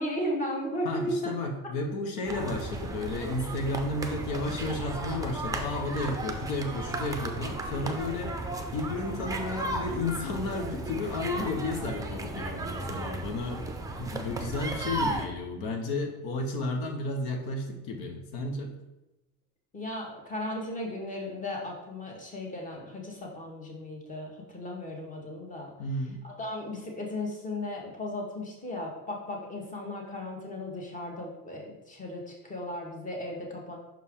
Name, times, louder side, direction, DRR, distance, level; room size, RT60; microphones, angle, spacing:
voice 1, 0.0-1.3 19.7-25.7 26.2-33.8, left 1 dB, 20° left, 0 dB, 1.3 m, -36 dB
voice 2, 0.8-13.6 14.0-18.7 25.8-26.2, left 2 dB, 85° left, 3 dB, 1.2 m, -32 dB
sound 1, 2.2-15.3, right 2 dB, 10° right, 0.5 m, -35 dB
6.0 x 4.5 x 3.7 m, 0.98 s
cardioid pair, 140°, 36 cm